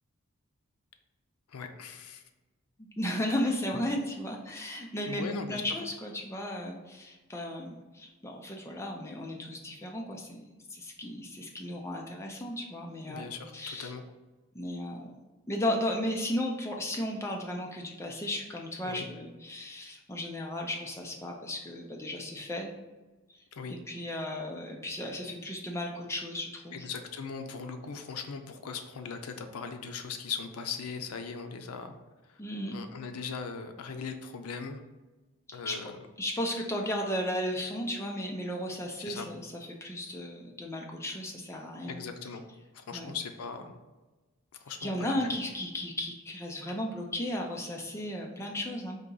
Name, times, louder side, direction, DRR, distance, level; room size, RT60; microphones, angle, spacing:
voice 1, 1.5-2.2 5.1-5.6 13.1-14.0 18.8-19.1 23.6-23.8 26.7-32.0 32.3-32.4 32.7-34.8 35.5-36.0 39.0-39.3 41.9-42.4 42.7-43.7 44.6-45.4, left 5 dB, 85° left, 6 dB, 0.5 m, -39 dB
voice 2, 3.0-5.2 5.5-13.9 14.5-15.1 15.5-22.7 23.7-26.9 32.4-32.8 35.5-35.9 36.2-42.0 42.9-43.1 44.8-49.0, left 1 dB, 10° left, 0 dB, 0.5 m, -35 dB
4.0 x 2.8 x 3.8 m, 1.2 s
head